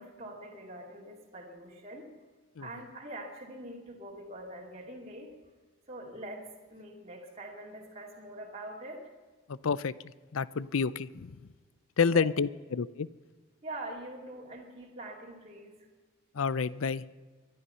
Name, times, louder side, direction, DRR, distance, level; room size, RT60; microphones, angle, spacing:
voice 1, 0.0-2.1 2.6-5.3 5.9-9.1 12.1-12.3 13.6-15.9, right 1 dB, 30° right, -3 dB, 2.4 m, -44 dB
voice 2, 9.5-9.9 10.3-11.4 12.0-13.1 16.3-17.0, left 5 dB, 75° left, 18 dB, 0.5 m, -29 dB
23.5 x 11.0 x 5.7 m, 1.4 s
head